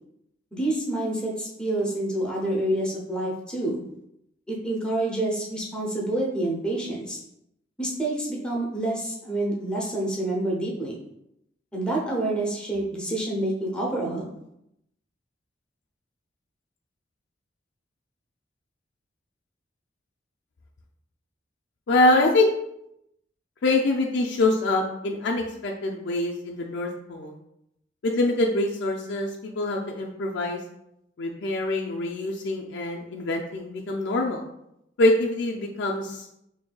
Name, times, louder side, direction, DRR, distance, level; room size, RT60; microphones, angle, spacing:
voice 1, 0.5-3.8 4.5-7.2 7.8-11.0 11.7-14.3, right 1 dB, 5° left, -4 dB, 0.7 m, -28 dB
voice 2, 21.9-22.4 23.6-27.3 28.0-30.6 31.2-34.4 35.0-36.2, left 2 dB, 65° left, -1 dB, 0.4 m, -24 dB
5.1 x 2.7 x 2.2 m, 0.79 s
head